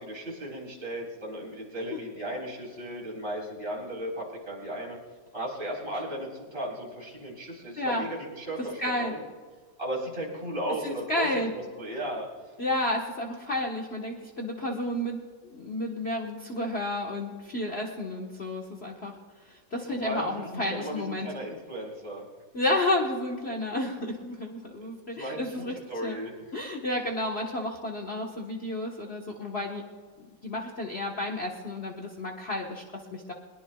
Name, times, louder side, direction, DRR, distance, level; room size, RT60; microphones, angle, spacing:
voice 1, 0.0-5.0 5.3-9.2 9.8-11.3 11.8-12.3 19.9-22.2 25.1-26.3, right 1 dB, 30° right, -3 dB, 4.4 m, -35 dB
voice 2, 8.8-9.1 10.8-11.5 12.6-19.2 19.5-21.3 22.5-26.2 26.5-29.8 30.2-33.3, left 1 dB, 40° left, 1 dB, 1.4 m, -31 dB
22.0 x 21.5 x 2.3 m, 1.5 s
omnidirectional pair, 2.0 m